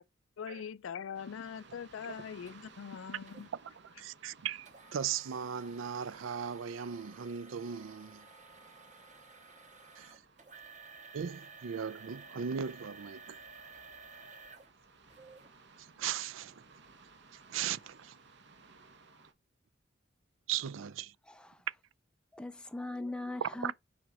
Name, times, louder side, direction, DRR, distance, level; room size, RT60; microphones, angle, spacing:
voice 1, 0.4-3.5, left 7 dB, 80° left, 0.4 m, -42 dB
sound 1, 1.1-19.3, right 4 dB, 60° right, 1.2 m, -60 dB
sound 2, 2.5-2.6 3.3-3.5 4.7-15.5 16.1-16.2 16.8-16.9, right 4 dB, 40° right, 2.1 m, -54 dB
voice 2, 4.0-8.3 10.0-10.2 11.1-13.4 15.8-16.6 17.3-18.2 20.5-21.1 23.4-23.7, right 8 dB, 75° right, 0.4 m, -38 dB
voice 3, 21.2-21.7 22.3-23.7, left 2 dB, 5° left, 0.3 m, -40 dB
6.2 x 4.8 x 4.1 m
head